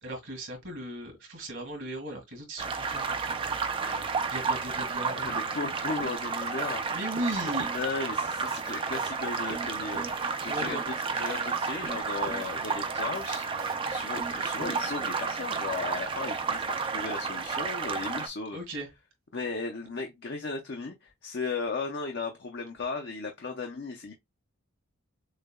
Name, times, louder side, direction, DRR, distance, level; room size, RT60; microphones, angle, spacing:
voice 1, 0.0-3.5 4.3-5.3 6.9-7.7 10.4-10.8 18.5-18.9, right 1 dB, 60° right, 2.0 m, -37 dB
sound 1, 2.6-18.3, right 5 dB, 25° right, 0.3 m, -32 dB
voice 2, 3.8-4.2 5.2-6.8 7.4-13.4 13.9-18.6 19.3-24.2, left 4 dB, 50° left, 0.5 m, -36 dB
sound 2, 6.0-6.3 6.6-6.9 7.2-8.1 8.3-11.6 11.8-12.7 13.0-15.2, right 3 dB, 40° right, 0.8 m, -42 dB
6.4 x 2.2 x 2.2 m
head